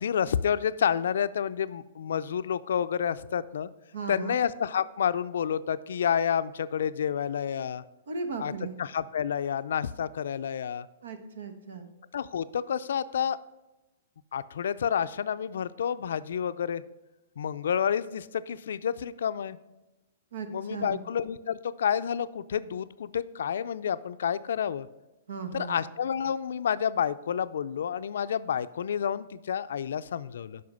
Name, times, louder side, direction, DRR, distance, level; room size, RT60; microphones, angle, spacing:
voice 1, 0.0-3.7 4.1-7.8 8.4-8.5 8.8-10.9 12.1-13.4 14.3-16.8 17.4-19.6 20.5-24.9 25.5-30.6, left 8 dB, 80° left, 14 dB, 0.4 m, -29 dB
voice 2, 3.9-4.4 8.1-8.7 11.0-11.9 20.3-21.0 25.3-25.8, right 4 dB, 80° right, 8 dB, 1.2 m, -37 dB
7.7 x 5.6 x 5.4 m, 1.0 s
hypercardioid pair, 145°, 0 cm